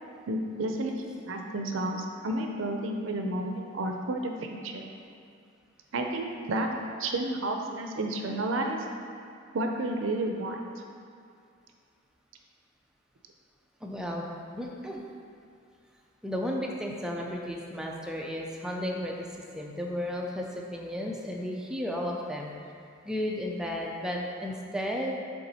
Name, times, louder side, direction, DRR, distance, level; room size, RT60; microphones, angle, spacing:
voice 1, 0.3-4.9 5.9-8.8 9.5-10.6, right 1 dB, 75° right, 3 dB, 0.5 m, -31 dB
voice 2, 13.8-14.3 14.5-15.0 16.2-19.3 19.5-22.5 23.1-25.2, equal, 5° right, -1 dB, 0.4 m, -33 dB
6.9 x 3.7 x 4.1 m, 2.4 s
head